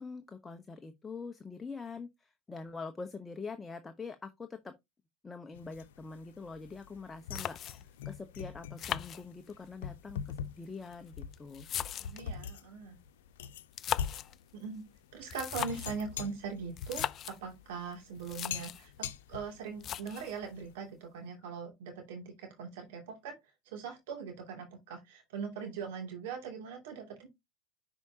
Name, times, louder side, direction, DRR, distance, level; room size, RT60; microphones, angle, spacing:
voice 1, 0.0-4.7 5.2-11.7, left 4 dB, 15° left, 0.9 m, -44 dB
sound 1, 5.5-20.7, left 8 dB, 70° left, 0.8 m, -44 dB
sound 2, 7.0-7.1 7.3-8.0 8.8-9.7 10.6-12.3 13.6-14.4 15.2-16.0 16.8-17.4 17.9-18.0 18.2-18.9 19.8-20.4, left 10 dB, 35° left, 0.3 m, -38 dB
voice 2, 11.9-13.0 14.5-14.8 15.1-23.4 23.7-27.3, right 5 dB, 65° right, 2.6 m, -41 dB
10.5 x 4.8 x 2.8 m
hypercardioid pair, 95°, 0 cm